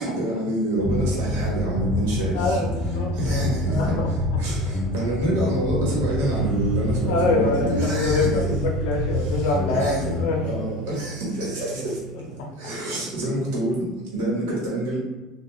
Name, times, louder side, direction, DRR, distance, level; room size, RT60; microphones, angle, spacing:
voice 1, 0.0-2.6 3.1-3.9 4.4-8.5 9.2-10.1 10.5-15.0, right 1 dB, 80° right, -4 dB, 1.0 m, -27 dB
sound 1, 0.8-10.4, left 2 dB, 15° left, 0.4 m, -27 dB
sound 2, 0.8-12.4 12.7-12.8, equal, 15° right, 1.1 m, -35 dB
voice 2, 2.3-4.1 7.0-10.4 12.4-12.5, left 3 dB, 75° left, 1 dB, 0.6 m, -25 dB
sound 3, 6.2-13.0, right 7 dB, 55° right, 0.5 m, -34 dB
2.3 x 2.2 x 2.9 m, 1.1 s
supercardioid pair, 100°, 0 cm